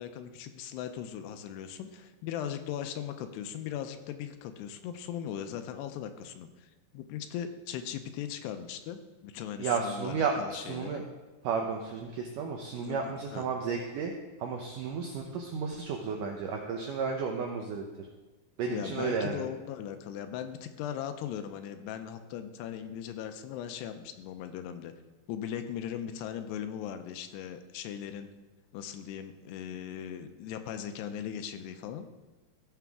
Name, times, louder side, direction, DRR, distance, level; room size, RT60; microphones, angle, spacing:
voice 1, 0.0-11.0 12.8-13.0 13.3-13.5 18.6-24.9 25.3-28.3 28.7-32.1, left 9 dB, 85° left, 8 dB, 2.7 m, -39 dB
voice 2, 9.6-11.0 11.4-14.1 14.4-17.8 18.6-19.4, right 5 dB, 85° right, 1 dB, 1.9 m, -33 dB
15.0 x 7.1 x 3.6 m, 1.3 s
omnidirectional pair, 4.8 m